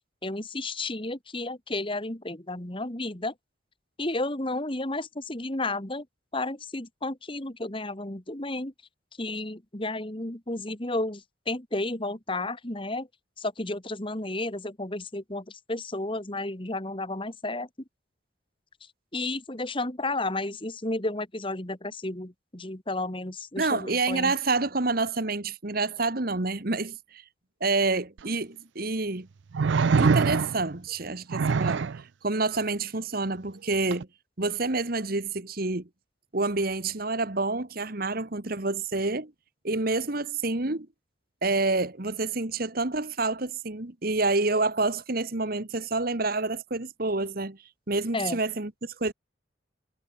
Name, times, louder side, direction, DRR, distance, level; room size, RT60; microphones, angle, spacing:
voice 1, 0.2-3.3 4.0-6.1 6.3-8.7 9.2-13.1 13.4-17.7 19.1-24.3 48.1-48.4, left 2 dB, 25° left, 2.0 m, -32 dB
voice 2, 23.6-27.2 27.6-29.3 30.0-31.9 32.2-34.1 34.4-35.9 36.3-39.3 39.6-40.9 41.4-47.6 47.9-49.1, right 3 dB, 50° right, 1.6 m, -28 dB
sound 1, 28.2-28.3 29.5-30.8 31.3-32.0 33.9-34.0, right 5 dB, 65° right, 0.4 m, -23 dB
head